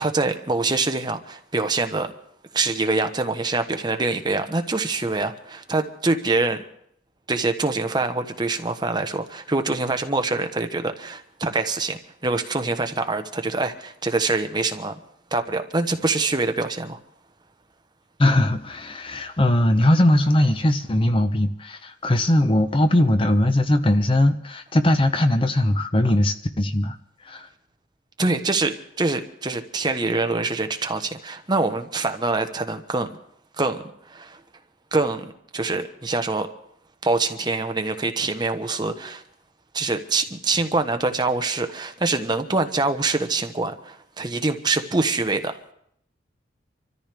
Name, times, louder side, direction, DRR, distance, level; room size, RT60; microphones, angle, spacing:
voice 1, 0.0-2.1 2.5-6.6 7.3-14.9 15.3-17.0 28.2-33.1 33.6-34.4 34.9-36.5 37.0-39.2 39.7-45.6, right 3 dB, 25° right, 6 dB, 1.0 m, -25 dB
voice 2, 18.2-27.0 27.2-27.5, left 1 dB, 30° left, 9 dB, 0.7 m, -20 dB
26.5 x 13.5 x 3.4 m, 0.70 s
head